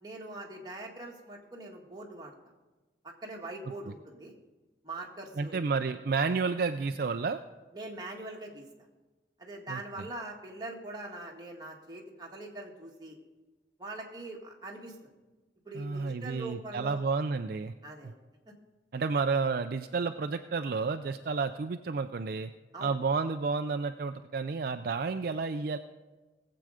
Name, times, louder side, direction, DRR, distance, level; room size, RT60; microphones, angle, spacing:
voice 1, 0.0-2.3 3.0-4.3 4.8-5.6 7.7-8.6 9.4-13.2 13.8-15.0 15.6-17.0 17.8-18.1 18.5-18.6 22.7-23.0, right 2 dB, 25° right, -1 dB, 1.7 m, -42 dB
voice 2, 5.4-7.4 9.7-10.1 15.7-17.7 18.9-22.5 22.8-25.8, right 4 dB, 55° right, 8 dB, 0.4 m, -31 dB
18.5 x 7.8 x 5.0 m, 1.2 s
head